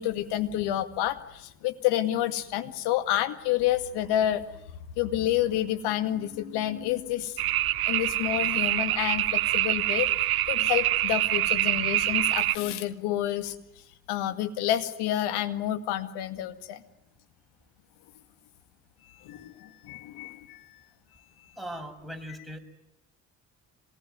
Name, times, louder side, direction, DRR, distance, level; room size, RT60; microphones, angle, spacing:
voice 1, 0.0-4.4 5.0-7.4 7.9-10.1 10.5-13.6 14.1-16.8 19.2-20.6, left 12 dB, 75° left, 9 dB, 2.1 m, -29 dB
sound 1, 7.4-12.6, right 14 dB, 65° right, 1.2 m, -25 dB
voice 2, 21.6-22.6, equal, ahead, 4 dB, 6.0 m, -39 dB
27.0 x 19.0 x 9.3 m, 0.83 s
hypercardioid pair, 50°, 40 cm